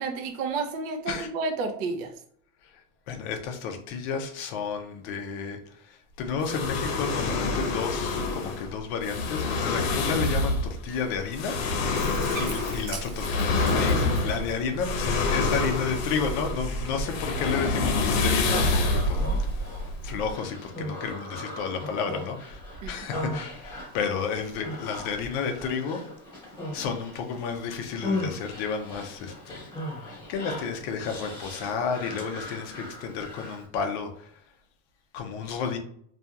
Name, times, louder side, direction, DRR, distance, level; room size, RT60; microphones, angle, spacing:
voice 1, 0.0-2.1 17.3-17.4 22.8-22.9, right 4 dB, 45° right, 4 dB, 0.5 m, -31 dB
voice 2, 3.1-11.6 12.4-19.5 20.0-26.1 26.7-29.7 30.0-34.4 35.1-35.8, left 6 dB, 40° left, 5 dB, 0.5 m, -32 dB
sound 1, 6.4-20.3, left 3 dB, 75° left, 0.7 m, -27 dB
Bathtub (filling or washing), 12.0-20.3, right 1 dB, 90° right, 0.9 m, -38 dB
Human voice, 18.5-33.7, left 1 dB, 10° left, 1.0 m, -38 dB
2.7 x 2.4 x 2.3 m, 0.63 s
supercardioid pair, 160°, 40 cm